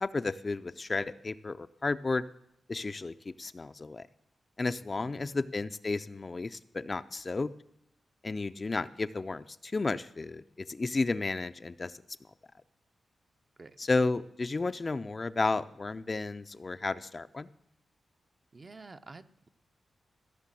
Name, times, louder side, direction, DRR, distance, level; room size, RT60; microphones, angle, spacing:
voice 1, 0.0-2.2 2.7-4.0 4.6-7.5 8.2-11.9 13.8-17.5, left 3 dB, 35° left, 12 dB, 0.4 m, -32 dB
voice 2, 5.0-5.4 13.6-13.8 18.5-19.5, right 3 dB, 35° right, 10 dB, 0.6 m, -50 dB
15.5 x 6.5 x 7.6 m, 0.79 s
wide cardioid pair, 105°, 0 cm